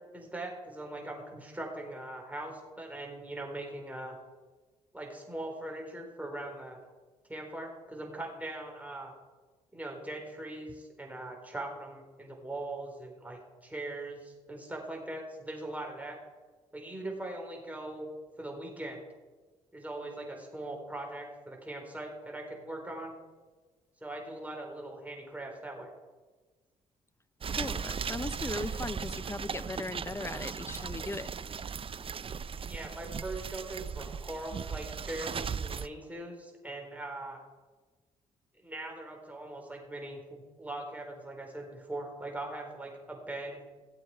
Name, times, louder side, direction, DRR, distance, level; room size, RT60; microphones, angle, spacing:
voice 1, 0.0-4.2 4.9-6.8 7.3-9.1 9.7-16.2 16.7-18.1 18.4-19.0 19.7-23.1 24.0-25.9 32.7-37.4 38.6-43.6, right 1 dB, 10° right, 1 dB, 4.3 m, -41 dB
sound 1, 27.4-35.9, right 6 dB, 35° right, 0.5 m, -37 dB
voice 2, 27.5-31.3, left 2 dB, 15° left, 17 dB, 0.6 m, -38 dB
16.5 x 7.9 x 5.0 m, 1.3 s
hypercardioid pair, 50°, 15 cm